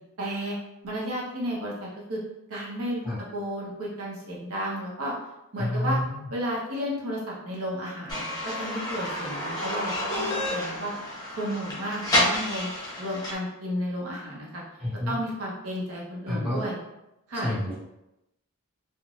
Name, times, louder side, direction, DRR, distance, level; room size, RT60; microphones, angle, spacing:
voice 1, 0.2-0.6 0.8-2.2 2.5-3.0 3.3-5.1 5.5-6.0 6.3-10.9 11.4-12.7 13.0-14.6 15.1-16.7 17.3-17.5, equal, 70° right, -4 dB, 0.7 m, -32 dB
voice 2, 5.6-6.3 14.8-15.2 16.3-16.6 17.3-17.8, left 1 dB, 25° right, -11 dB, 1.4 m, -29 dB
sound 1, 8.1-13.3, left 1 dB, 15° left, 0.8 m, -29 dB
3.1 x 2.1 x 2.5 m, 0.90 s
head